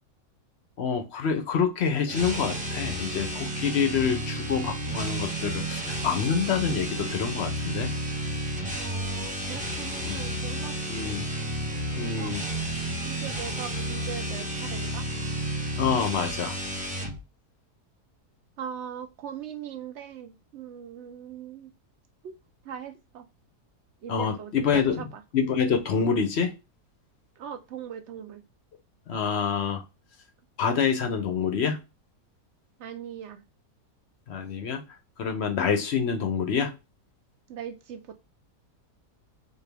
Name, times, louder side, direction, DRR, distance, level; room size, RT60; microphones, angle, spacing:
voice 1, 0.8-7.9 10.0-10.2 10.9-11.2 11.9-12.4 15.8-16.6 24.1-25.0 25.3-26.5 29.1-29.8 30.6-31.8 34.3-34.8 35.2-36.7, left 6 dB, 60° left, 6 dB, 0.7 m, -27 dB
sound 1, 2.0-17.2, right 1 dB, 10° right, 0.4 m, -32 dB
voice 2, 8.8-10.7 11.0-11.1 12.2-12.3 13.0-15.1 18.6-21.7 22.2-22.4 22.6-23.3 24.0-24.5 25.0-25.2 27.4-28.4 32.8-33.4 37.5-38.0, right 8 dB, 75° right, 8 dB, 0.6 m, -40 dB
4.3 x 2.4 x 3.3 m, 0.26 s
omnidirectional pair, 1.7 m